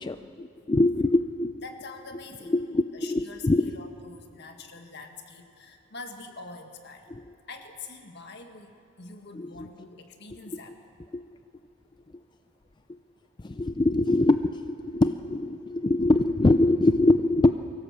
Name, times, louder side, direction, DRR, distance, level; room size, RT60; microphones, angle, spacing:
voice 1, 0.0-1.5 2.5-3.7 9.4-9.5 11.1-11.2 13.4-17.5, left 2 dB, 25° left, 0.4 m, -23 dB
voice 2, 1.6-2.5 2.9-7.1 7.5-10.8, left 3 dB, 60° left, 1.9 m, -44 dB
24.0 x 16.5 x 7.5 m
head